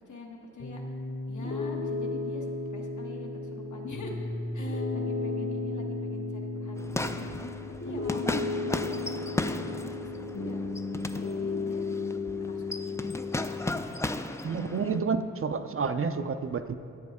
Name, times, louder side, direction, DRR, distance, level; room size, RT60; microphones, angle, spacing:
voice 1, 0.1-0.8 1.3-10.6 11.1-13.1, left 2 dB, 75° left, 0 dB, 1.4 m, -44 dB
Piano, 0.6-13.7, left 3 dB, 60° left, 1.5 m, -34 dB
sound 1, 6.8-15.0, left 2 dB, 10° left, 0.3 m, -35 dB
voice 2, 14.4-16.7, right 5 dB, 45° right, 9 dB, 0.5 m, -29 dB
13.5 x 8.6 x 3.6 m, 2.4 s
wide cardioid pair, 85°, 30 cm